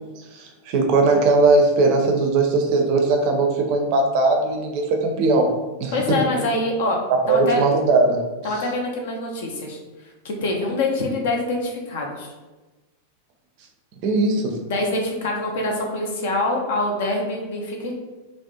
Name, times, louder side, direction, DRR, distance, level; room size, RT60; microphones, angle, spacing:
voice 1, 0.3-6.2 7.3-8.2 14.0-14.6, right 3 dB, 45° right, 3 dB, 0.4 m, -19 dB
voice 2, 5.9-7.0 7.3-7.6 8.4-9.8 10.2-12.3 14.6-17.9, left 2 dB, 55° left, 1 dB, 0.4 m, -25 dB
2.4 x 2.0 x 2.7 m, 1.2 s
figure-of-eight pair, 90°, 0 cm